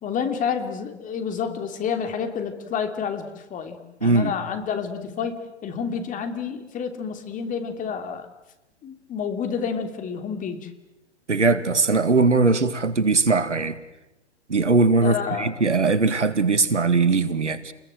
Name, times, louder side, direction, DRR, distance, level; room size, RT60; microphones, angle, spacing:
voice 1, 0.0-8.3 8.8-10.7 15.0-15.5, left 6 dB, 20° left, 3.0 m, -29 dB
voice 2, 4.0-4.3 11.3-13.8 14.5-17.7, right 3 dB, 85° right, 2.0 m, -20 dB
30.0 x 21.5 x 7.8 m
figure-of-eight pair, 115°, 35 cm